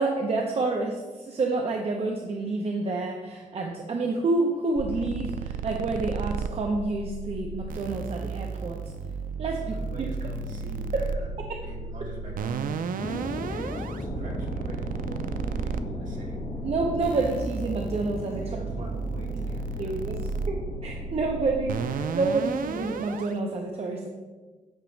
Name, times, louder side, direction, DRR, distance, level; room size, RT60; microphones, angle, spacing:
voice 1, 0.0-8.8 9.4-9.8 11.5-11.6 13.5-13.6 16.6-18.6 19.8-24.1, right 3 dB, 45° right, 1 dB, 0.7 m, -28 dB
sound 1, 4.8-23.3, right 5 dB, 85° right, 0.4 m, -33 dB
voice 2, 9.6-16.4 17.1-17.3 18.4-20.0, right 2 dB, 65° right, -3 dB, 2.1 m, -43 dB
sound 2, 13.0-22.9, left 2 dB, 45° left, 0.9 m, -37 dB
8.8 x 3.0 x 6.2 m, 1.3 s
wide cardioid pair, 170°, 14 cm